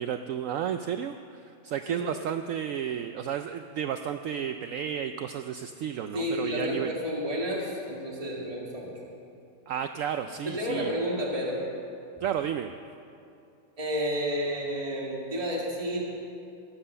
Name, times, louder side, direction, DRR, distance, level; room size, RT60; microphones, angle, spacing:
voice 1, 0.0-6.9 9.7-10.9 12.2-12.7, right 9 dB, 70° right, 8 dB, 0.8 m, -32 dB
voice 2, 6.1-8.9 10.4-11.6 13.8-16.0, equal, 25° right, -3 dB, 2.2 m, -31 dB
21.5 x 7.5 x 6.9 m, 2.6 s
omnidirectional pair, 1.6 m